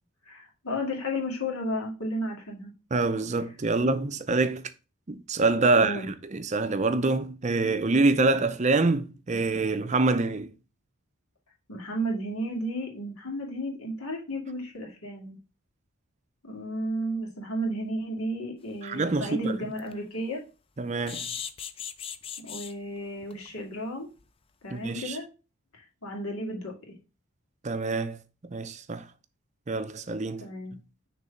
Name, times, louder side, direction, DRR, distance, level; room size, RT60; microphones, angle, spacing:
voice 1, 0.3-2.7 5.8-6.1 11.7-15.4 16.4-20.4 22.4-24.1 24.6-25.3 25.7-27.0 30.4-30.8, equal, 80° left, 2.3 m, -33 dB
voice 2, 2.9-4.6 5.1-10.5 18.8-19.6 20.8-21.3 24.7-25.2 27.6-28.2 28.5-29.0 29.7-30.5, right 3 dB, 30° right, 0.5 m, -26 dB
sound 1, 18.7-18.8 19.3-19.4 19.7-19.9 21.1-22.7 23.3-23.5 23.8-23.9 24.2-24.3, left 8 dB, 25° left, 0.3 m, -37 dB
6.2 x 3.4 x 5.7 m
head